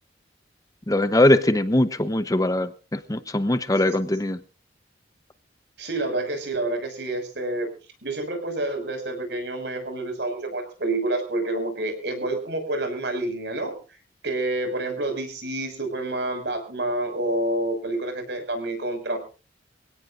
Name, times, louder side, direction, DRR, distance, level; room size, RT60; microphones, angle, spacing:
voice 1, 0.9-4.4, left 1 dB, 20° left, 0.8 m, -21 dB
voice 2, 5.8-7.7 8.0-13.8 14.2-19.2, right 2 dB, 65° right, 5.8 m, -28 dB
25.5 x 17.5 x 2.6 m
head